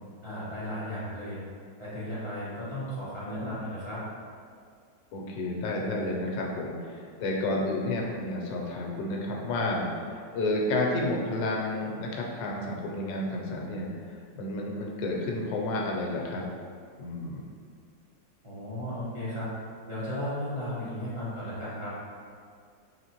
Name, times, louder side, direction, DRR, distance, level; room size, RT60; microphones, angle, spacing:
voice 1, 0.2-1.4 1.8-4.0 18.4-19.5 19.9-21.9, left 1 dB, 40° right, -10 dB, 0.4 m, -35 dB
voice 2, 5.1-13.9 14.3-16.4 17.0-17.5, left 2 dB, 85° left, -1 dB, 1.3 m, -31 dB
3.9 x 3.1 x 2.9 m, 2.2 s
omnidirectional pair, 2.0 m